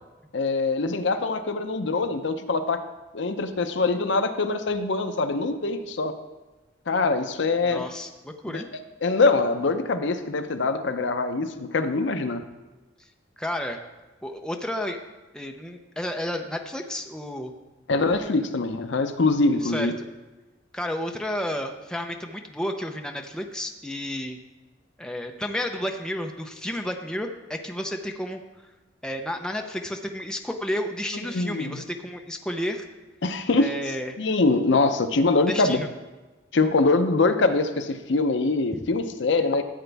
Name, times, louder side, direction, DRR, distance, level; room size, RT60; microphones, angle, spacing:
voice 1, 0.3-2.8 3.1-6.2 6.9-7.8 8.5-8.7 9.0-12.4 17.9-20.0 31.3-31.8 33.2-33.7 34.2-35.8 36.5-39.6, left 3 dB, 65° left, 8 dB, 0.7 m, -23 dB
voice 2, 7.6-8.7 13.4-13.8 14.2-15.0 15.3-17.5 19.6-19.9 20.7-24.4 25.0-28.4 29.0-32.9 33.6-34.2 35.1-35.9, left 1 dB, 5° left, 3 dB, 0.7 m, -31 dB
14.0 x 8.0 x 3.4 m, 1.2 s
head